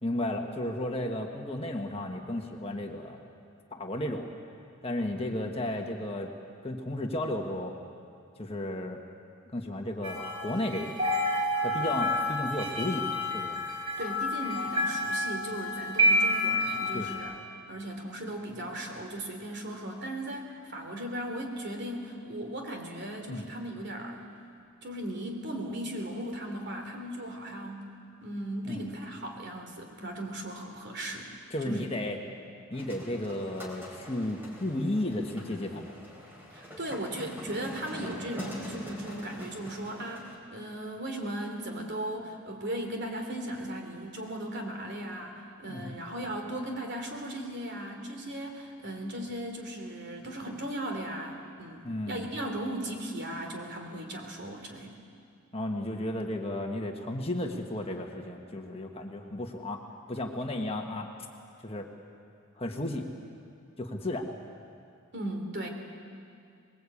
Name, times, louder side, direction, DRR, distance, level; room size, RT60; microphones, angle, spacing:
voice 1, 0.0-3.2 3.7-4.3 4.8-6.3 6.6-7.7 8.4-9.0 9.5-11.0 11.6-13.6 16.9-17.1 23.3-23.4 28.7-28.8 31.5-32.2 32.7-35.9 45.6-45.9 51.8-52.3 55.5-59.8 60.1-61.1 61.6-61.9 62.6-63.0 63.8-64.3, left 1 dB, 25° left, 2 dB, 1.5 m, -33 dB
sound 1, 10.0-17.2, left 1 dB, 25° right, 5.8 m, -29 dB
voice 2, 14.0-17.3 17.7-24.2 24.8-27.9 28.2-31.3 31.6-31.9 36.5-54.9 65.1-65.7, right 1 dB, 50° right, 3 dB, 3.2 m, -37 dB
sound 2, 32.7-40.4, equal, 10° right, 4.0 m, -45 dB
24.5 x 20.5 x 8.6 m, 2.4 s
head